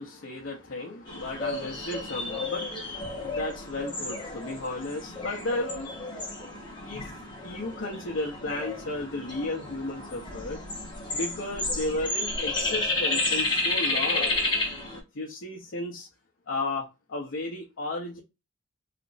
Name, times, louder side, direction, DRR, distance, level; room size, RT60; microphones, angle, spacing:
voice 1, 0.0-6.1 6.8-7.1 7.4-10.6 11.1-14.3 15.1-16.1 16.5-18.2, left 2 dB, 85° left, 0.7 m, -34 dB
sound 1, 1.1-15.0, left 2 dB, 25° left, 1.2 m, -31 dB
3.3 x 3.0 x 2.5 m
head